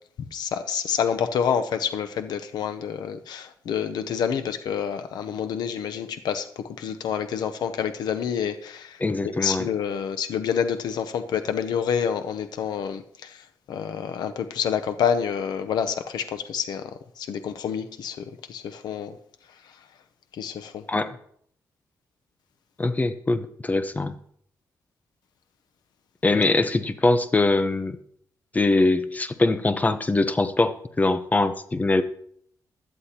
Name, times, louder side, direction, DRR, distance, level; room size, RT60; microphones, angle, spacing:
voice 1, 0.3-19.2 20.3-20.8, left 7 dB, 90° left, 9 dB, 0.8 m, -28 dB
voice 2, 9.0-9.7 20.9-21.2 22.8-24.1 26.2-28.0 28.5-32.0, left 2 dB, 20° left, 11 dB, 0.8 m, -22 dB
16.5 x 11.5 x 2.9 m, 0.65 s
cardioid pair, 105°, 7 cm